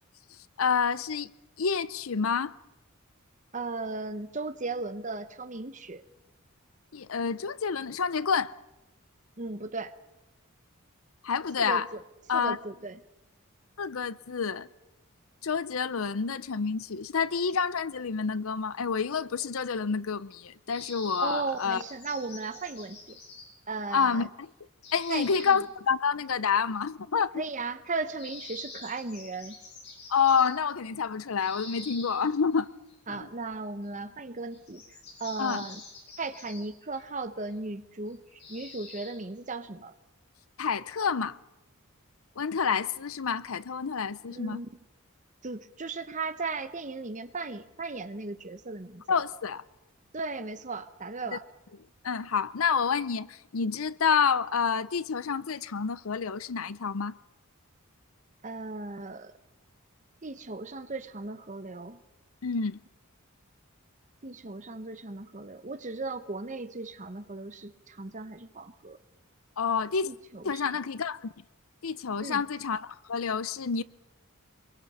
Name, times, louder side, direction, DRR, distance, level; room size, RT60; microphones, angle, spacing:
voice 1, 0.6-1.3 1.6-2.5 6.9-8.5 11.2-11.9 12.3-12.6 13.8-14.7 15.4-21.8 23.9-24.5 24.9-27.4 30.1-32.7 33.1-33.3 35.4-35.7 40.6-41.4 42.4-44.6 49.1-49.6 51.3-51.4 52.0-57.1 62.4-62.8 69.6-70.1 70.4-71.3 71.8-73.8, left 6 dB, 70° left, 0.6 m, -28 dB
voice 2, 3.5-6.0 9.4-9.9 11.6-12.0 12.3-13.0 21.2-23.2 23.7-24.3 25.1-25.6 27.3-29.5 33.1-34.8 35.2-35.8 36.2-39.9 44.3-44.7 45.4-49.2 50.1-51.5 58.4-59.3 60.2-62.0 64.2-69.0 70.1-70.8 72.2-72.4, right 3 dB, 35° right, 1.0 m, -36 dB
sound 1, 20.7-23.5 24.8-25.5 28.1-30.6 31.4-32.2 32.6-32.9 33.8-33.9 34.5-37.0 37.4-37.5 38.1-38.2 38.4-39.2, left 4 dB, 50° left, 7.9 m, -46 dB
24.5 x 23.0 x 5.6 m
head